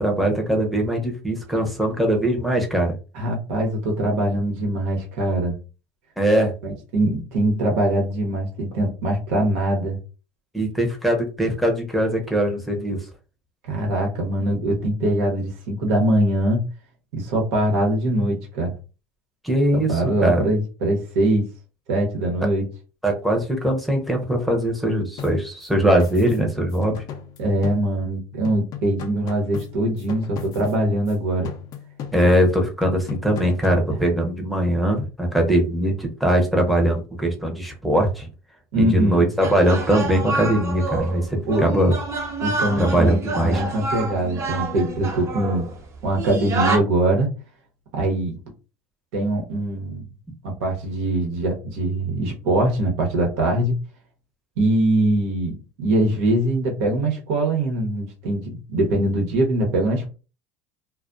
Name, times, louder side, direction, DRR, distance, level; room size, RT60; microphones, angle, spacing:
voice 1, 0.0-2.9 6.2-6.5 10.5-13.0 19.4-20.4 23.0-27.0 32.1-38.3 38.8-41.9 42.8-43.6, right 1 dB, ahead, 1 dB, 0.7 m, -21 dB
voice 2, 3.1-5.6 6.6-10.0 13.7-16.7 17.1-18.7 19.7-21.4 21.9-22.6 27.4-31.5 38.7-39.2 41.5-41.7 42.4-45.7 46.0-47.3 47.9-48.3 49.1-50.1 50.4-53.8 54.6-60.1, right 1 dB, 80° right, 1 dB, 1.0 m, -22 dB
sound 1, 25.2-28.2 28.4-31.1 31.4-32.5 32.8-33.9, left 8 dB, 55° left, 0.5 m, -38 dB
sound 2, 39.4-46.8, right 3 dB, 40° right, 0.8 m, -28 dB
2.3 x 2.2 x 2.5 m, 0.32 s
supercardioid pair, 85°, 8 cm